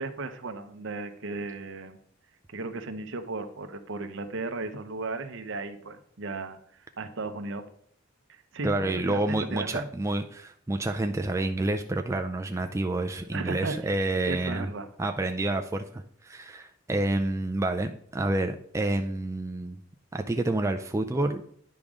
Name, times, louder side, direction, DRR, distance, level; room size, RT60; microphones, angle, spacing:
voice 1, 0.0-2.0 2.5-6.6 7.0-7.6 8.5-9.8 13.3-13.9 14.3-14.9, right 3 dB, 60° right, 9 dB, 0.8 m, -35 dB
voice 2, 8.6-14.7 15.0-19.8 20.1-21.4, right 2 dB, 15° right, 5 dB, 0.4 m, -29 dB
10.5 x 5.0 x 3.6 m, 0.63 s
head